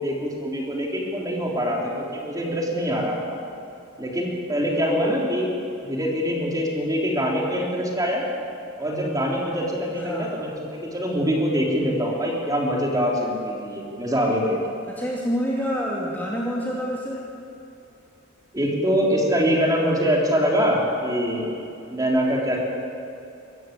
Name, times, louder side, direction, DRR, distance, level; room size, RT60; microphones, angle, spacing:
voice 1, 0.0-3.4 4.0-5.5 5.8-8.3 8.8-14.6 18.5-21.5 21.9-22.7, equal, 15° right, -2 dB, 3.6 m, -24 dB
voice 2, 10.0-10.5 14.9-17.3, equal, 10° left, -4 dB, 2.3 m, -27 dB
24.0 x 14.0 x 8.6 m, 2.8 s
head